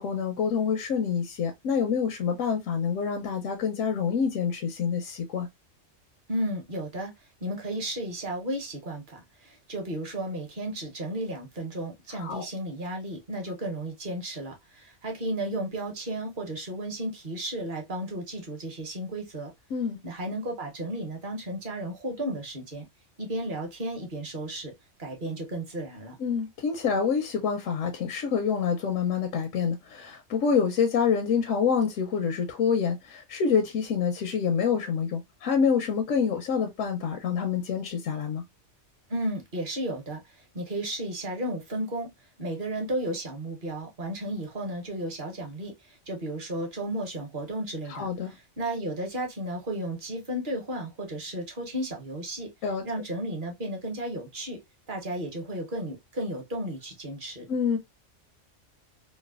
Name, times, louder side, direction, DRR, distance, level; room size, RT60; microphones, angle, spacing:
voice 1, 0.0-5.5 12.2-12.4 19.7-20.0 26.2-38.4 47.9-48.3 52.6-52.8 57.5-57.8, left 6 dB, 85° left, 0.9 m, -27 dB
voice 2, 6.3-7.1 7.4-19.5 20.0-22.8 23.2-24.7 25.0-26.2 39.1-42.1 42.4-52.5 52.8-54.6 54.9-57.5, right 1 dB, 45° right, 1.0 m, -33 dB
3.1 x 2.1 x 2.3 m
omnidirectional pair, 1.3 m